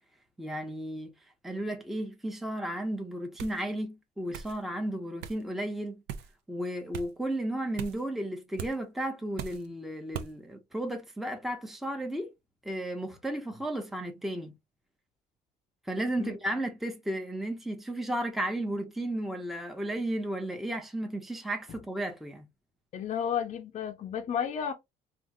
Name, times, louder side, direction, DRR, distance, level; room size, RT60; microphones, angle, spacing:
voice 1, 0.4-1.1 1.4-6.0 6.5-12.3 12.6-14.5 15.9-22.4, right 1 dB, ahead, 0.6 m, -34 dB
sound 1, 3.4-3.6 4.3-4.6 5.2-5.4 6.1-6.3 6.9-7.1 7.8-8.0 8.6-8.8 9.4-9.7 10.1-10.3, right 8 dB, 80° right, 0.5 m, -39 dB
voice 2, 22.9-24.7, left 8 dB, 45° left, 0.5 m, -32 dB
3.5 x 2.4 x 2.6 m
cardioid pair, 110°, 17 cm